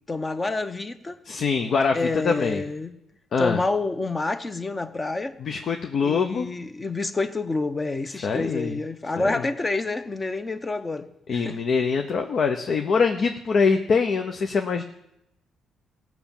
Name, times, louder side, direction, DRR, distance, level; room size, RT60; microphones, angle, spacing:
voice 1, 0.1-1.2 1.9-2.9 3.4-5.4 6.0-11.6, left 3 dB, 25° left, 0.9 m, -28 dB
voice 2, 1.2-2.6 3.3-3.6 5.4-6.5 8.2-8.8 9.2-9.4 11.3-14.8, left 5 dB, 55° left, 0.8 m, -24 dB
17.0 x 6.0 x 7.3 m
cardioid pair, 90°, 0 cm